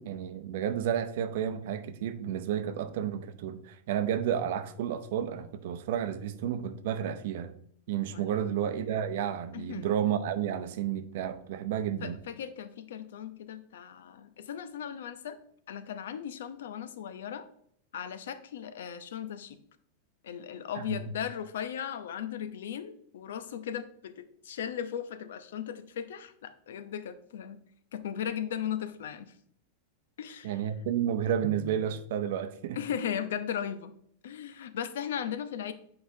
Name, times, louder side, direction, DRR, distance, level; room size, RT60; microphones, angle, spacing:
voice 1, 0.0-7.5 7.9-12.2 20.7-20.8 30.4-32.8, right 9 dB, 55° right, 10 dB, 0.6 m, -31 dB
voice 2, 8.1-8.4 9.5-9.9 12.0-15.4 15.7-17.5 17.9-19.6 20.2-27.6 27.9-29.3 30.2-30.5 32.7-33.9 34.2-35.7, left 9 dB, 90° left, 11 dB, 0.6 m, -37 dB
8.2 x 4.8 x 2.7 m, 0.67 s
supercardioid pair, 175°, 0 cm